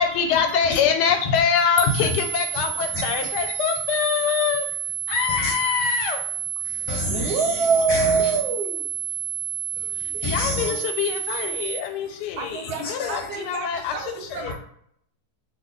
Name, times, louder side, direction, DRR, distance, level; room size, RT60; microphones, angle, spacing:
voice 1, 0.0-4.7 5.1-6.2 10.2-14.5, left 7 dB, 90° left, 5 dB, 1.2 m, -24 dB
sound 1, 1.8-11.8, right 10 dB, 70° right, 1.0 m, -30 dB
voice 2, 2.9-3.3 5.3-5.5 6.6-8.4 9.8-10.8 12.3-12.4 12.6-13.3 14.5-14.6, left 2 dB, 65° left, 1 dB, 0.9 m, -30 dB
voice 3, 7.1-8.9 12.4-14.5, right 5 dB, 90° right, 4 dB, 0.5 m, -25 dB
2.6 x 2.6 x 3.6 m, 0.69 s
omnidirectional pair, 1.7 m